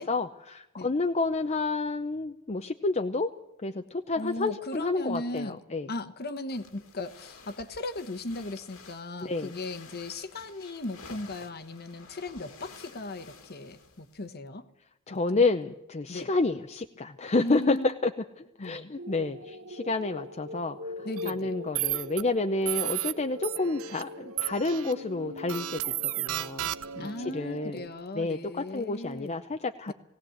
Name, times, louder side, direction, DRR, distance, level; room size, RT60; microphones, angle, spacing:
voice 1, 0.0-3.3 3.6-5.9 9.2-9.6 15.1-18.1 18.6-20.8 21.2-27.9 28.2-29.9, left 3 dB, 30° left, 6 dB, 0.7 m, -29 dB
voice 2, 4.2-5.6 5.9-14.6 15.3-15.5 16.1-16.3 17.4-17.9 18.6-18.9 21.0-21.6 27.0-29.4 29.9-30.0, left 2 dB, 50° left, 8 dB, 1.2 m, -37 dB
sound 1, 6.5-14.3, left 4 dB, 80° left, 2.3 m, -51 dB
sound 2, 19.0-27.9, left 1 dB, 70° right, 1.2 m, -42 dB
sound 3, 21.2-21.3 21.8-22.2 22.7-23.1 23.4-24.0 24.4-24.9 25.5-27.1, right 14 dB, 85° right, 0.6 m, -32 dB
19.0 x 18.0 x 7.9 m, 0.87 s
head